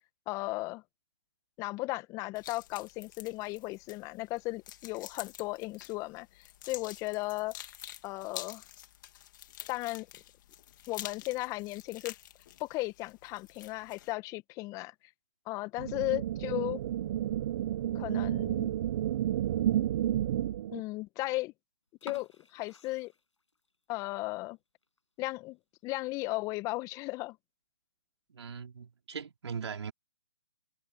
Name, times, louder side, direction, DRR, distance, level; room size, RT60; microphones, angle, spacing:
voice 1, 0.3-0.8 1.6-7.6 8.0-8.6 9.7-10.1 10.9-12.1 12.6-14.9 15.5-16.8 17.9-18.7 20.7-21.5 22.0-23.1 23.9-24.6 25.2-25.6 25.8-27.4, left 21 dB, 20° left, 1.5 m, -36 dB
sound 1, 2.4-14.1, left 13 dB, 40° left, 3.1 m, -48 dB
sound 2, 15.8-20.8, right 11 dB, 40° right, 0.9 m, -31 dB
sound 3, 21.9-23.8 24.2-24.3 24.8-25.0 25.4-25.5 25.8-25.9 26.6-26.9, left 3 dB, 85° left, 6.5 m, -51 dB
voice 2, 28.3-29.9, right 6 dB, 65° right, 3.7 m, -40 dB
figure-of-eight pair, 135°, 15 cm